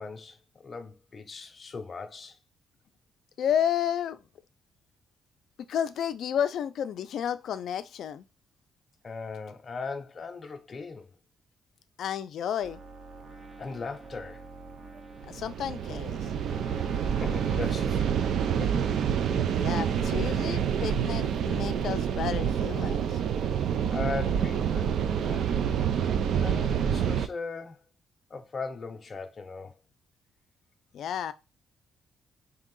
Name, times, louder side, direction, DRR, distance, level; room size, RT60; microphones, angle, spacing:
voice 1, 0.0-2.4 9.0-11.1 13.6-14.4 17.2-18.2 18.6-18.8 23.9-25.5 26.4-27.8 28.3-29.8, left 4 dB, 35° left, 0.6 m, -38 dB
voice 2, 3.4-4.2 5.7-8.2 12.0-12.8 15.3-16.3 19.5-23.2 30.9-31.3, left 9 dB, 75° left, 0.4 m, -31 dB
sound 1, 12.6-22.6, right 5 dB, 35° right, 0.7 m, -42 dB
sound 2, 15.2-27.3, right 8 dB, 75° right, 0.4 m, -27 dB
3.6 x 2.7 x 3.8 m
cardioid pair, 105°, 0 cm